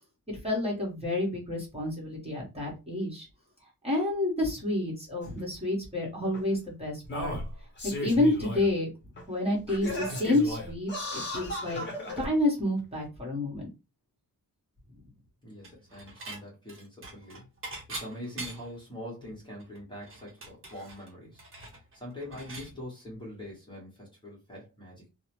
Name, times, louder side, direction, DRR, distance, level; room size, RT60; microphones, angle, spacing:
voice 1, 0.3-3.3 3.8-7.3 7.8-8.9 9.3-11.8 12.2-13.7, left 2 dB, 15° right, 1.1 m, -29 dB
Singing, 5.2-5.3 6.3-6.4 7.0-8.7 9.2-9.3 9.7-12.3 13.0-13.1, left 1 dB, 35° left, 0.8 m, -35 dB
voice 2, 15.4-17.5 17.7-21.4 21.7-25.1, left 1 dB, 15° left, 1.0 m, -43 dB
Dishes pots and pans / Chink clink, 15.6-16.4 16.7-18.8 19.2-19.3 19.6-22.7, right 2 dB, 35° right, 0.8 m, -43 dB
2.7 x 2.0 x 2.9 m
wide cardioid pair, 170°, 34 cm